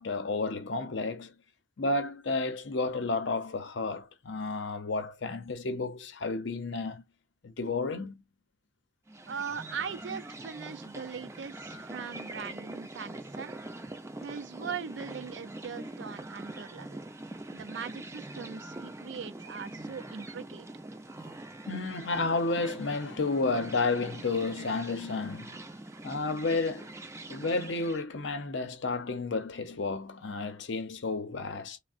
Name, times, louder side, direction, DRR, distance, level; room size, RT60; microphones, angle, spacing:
voice 1, 0.0-1.3 1.8-7.0 7.4-8.2 21.7-25.6 26.0-26.9 27.3-31.8, left 3 dB, 70° left, 0.6 m, -31 dB
sound 1, 9.1-28.0, right 2 dB, 15° right, 0.5 m, -44 dB
voice 2, 9.3-13.6 14.2-17.0 17.5-20.7, right 6 dB, 70° right, 0.4 m, -40 dB
3.5 x 2.1 x 2.4 m
head